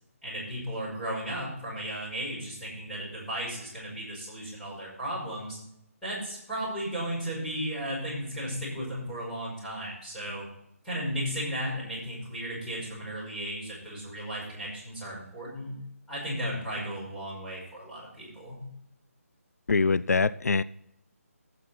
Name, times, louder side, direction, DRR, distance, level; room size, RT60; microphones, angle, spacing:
voice 1, 0.2-5.6 6.0-10.4 10.8-15.7 16.1-18.6, equal, 5° left, -8 dB, 5.1 m, -35 dB
voice 2, 19.7-20.6, left 4 dB, 85° left, 17 dB, 0.4 m, -24 dB
12.5 x 8.5 x 4.2 m, 0.75 s
figure-of-eight pair, 160°, 8 cm